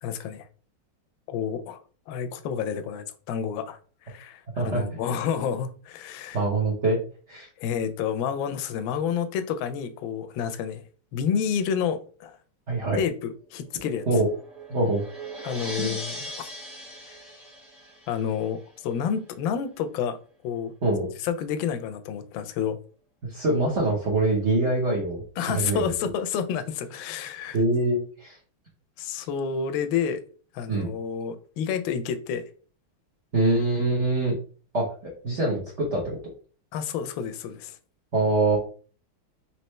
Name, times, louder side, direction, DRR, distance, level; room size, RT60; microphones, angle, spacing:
voice 1, 0.0-0.5 1.3-6.4 7.6-10.8 11.1-12.4 13.0-14.0 15.4-16.3 17.1-17.2 18.1-20.2 20.4-20.7 21.2-22.8 25.4-27.6 29.0-30.2 30.5-32.5 36.7-37.8, left 7 dB, 75° left, 9 dB, 1.3 m, -29 dB
voice 2, 6.3-7.0 7.3-7.5 12.7-13.0 14.1-14.3 14.7-15.0 15.8-16.0 20.8-21.1 23.3-25.8 27.5-28.4 30.7-30.9 33.3-34.3 34.7-36.2 38.1-38.6, right 2 dB, 45° right, -3 dB, 1.1 m, -24 dB
sound 1, 13.6-18.7, right 1 dB, ahead, 1.1 m, -39 dB
4.2 x 3.1 x 3.1 m, 0.40 s
omnidirectional pair, 2.2 m